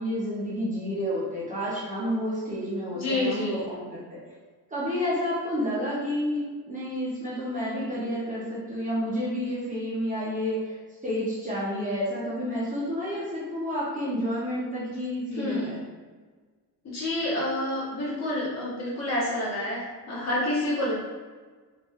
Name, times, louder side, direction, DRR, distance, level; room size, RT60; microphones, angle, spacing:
voice 1, 0.0-4.2 4.7-10.8 11.0-15.8, equal, 20° right, -8 dB, 0.8 m, -30 dB
voice 2, 2.9-3.6 15.3-15.8 16.8-21.1, left 1 dB, 40° left, -7 dB, 1.2 m, -28 dB
3.5 x 2.6 x 3.1 m, 1.4 s
cardioid pair, 160°, 41 cm